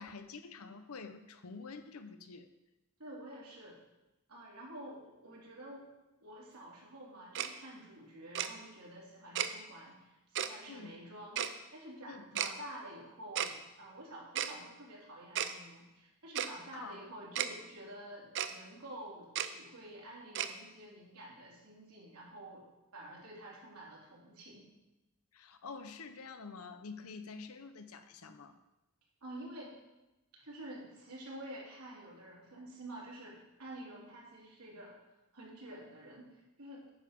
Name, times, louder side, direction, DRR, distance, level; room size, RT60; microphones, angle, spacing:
voice 1, 0.0-2.5 10.7-10.9 12.1-12.4 16.7-17.0 25.3-28.6, left 4 dB, 75° left, 9 dB, 0.8 m, -48 dB
voice 2, 3.0-3.8 4.3-5.9 6.2-22.6 22.9-24.7 29.2-29.7 30.4-35.0 35.3-36.9, right 1 dB, 80° right, -4 dB, 3.4 m, -49 dB
Tick-tock, 7.3-7.5 8.3-8.5 9.3-9.5 10.3-10.5 11.3-11.5 12.3-12.5 13.3-13.5 14.3-14.5 15.3-15.5 16.3-16.5 17.3-17.5 18.3-18.5 19.3-19.5 20.3-20.5, right 10 dB, 55° right, 0.5 m, -33 dB
9.7 x 6.8 x 5.3 m, 0.99 s
head